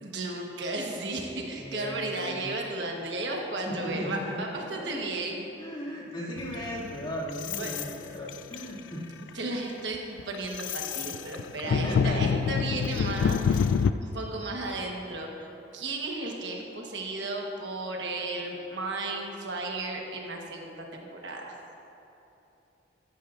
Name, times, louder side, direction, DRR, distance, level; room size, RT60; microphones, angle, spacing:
voice 1, 0.0-5.5 7.6-7.7 9.3-13.7 14.0-15.5 15.7-21.5, right 2 dB, 65° right, 0 dB, 1.2 m, -34 dB
voice 2, 1.6-2.5 3.7-5.1 5.6-9.1 11.6-12.4, equal, 30° left, -7 dB, 2.3 m, -36 dB
sound 1, 6.4-7.9 8.3-8.8 9.3-9.5 9.9-13.9, left 6 dB, 75° left, 0.3 m, -27 dB
13.5 x 12.0 x 2.5 m, 3.0 s
head